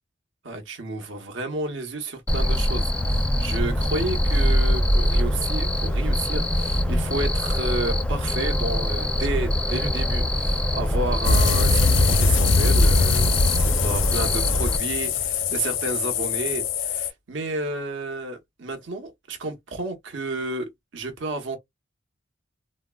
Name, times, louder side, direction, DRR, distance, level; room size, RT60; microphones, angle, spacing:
voice 1, 0.4-21.6, right 2 dB, 75° right, 0.9 m, -31 dB
Cricket, 2.3-14.8, equal, 5° left, 0.4 m, -23 dB
sound 1, 11.2-17.1, left 4 dB, 90° left, 0.6 m, -22 dB
3.6 x 2.1 x 2.2 m
head